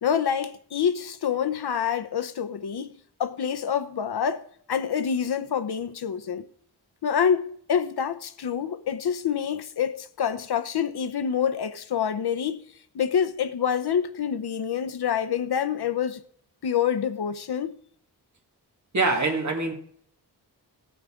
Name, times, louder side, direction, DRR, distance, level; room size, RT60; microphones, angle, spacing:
voice 1, 0.0-2.9 3.2-4.4 4.7-6.4 7.0-12.6 12.9-16.2 16.6-17.7, left 8 dB, 65° left, 0.9 m, -26 dB
voice 2, 18.9-19.7, right 3 dB, 45° right, 2.0 m, -24 dB
16.5 x 8.9 x 3.7 m
wide cardioid pair, 175°, 41 cm